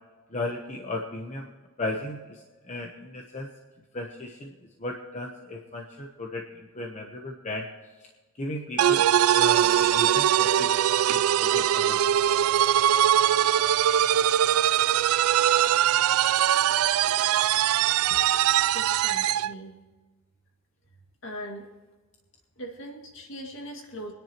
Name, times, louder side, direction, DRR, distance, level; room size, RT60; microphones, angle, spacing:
voice 1, 0.3-1.5 1.8-3.5 3.9-4.5 4.8-7.7 8.4-9.0 9.4-10.7 11.1-12.0, left 2 dB, 30° left, 2 dB, 0.9 m, -35 dB
sound 1, 8.8-19.5, right 11 dB, 75° right, 0.3 m, -22 dB
voice 2, 18.7-19.7 21.2-21.7 22.6-24.1, equal, 60° left, 1 dB, 2.2 m, -40 dB
24.5 x 10.0 x 3.0 m, 1.3 s
head